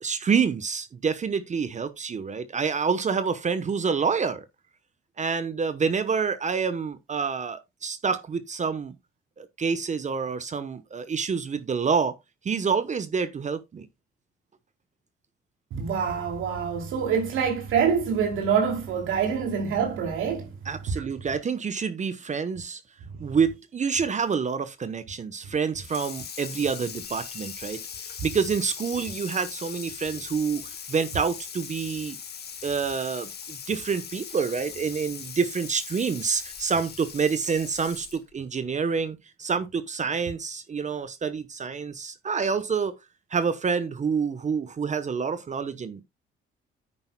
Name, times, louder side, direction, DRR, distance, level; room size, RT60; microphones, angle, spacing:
voice 1, 0.0-4.5 5.2-8.9 9.4-12.2 12.4-13.9 20.7-22.8 23.2-32.2 32.6-42.9 43.3-46.0, right 5 dB, 35° right, 0.9 m, -27 dB
voice 2, 15.7-20.6 21.0-21.1, right 6 dB, 85° right, 2.6 m, -26 dB
Water tap faucet / Sink (filling or washing), 25.8-38.3, left 7 dB, 55° left, 1.7 m, -40 dB
9.9 x 8.8 x 2.2 m
cardioid pair, 90°, 20 cm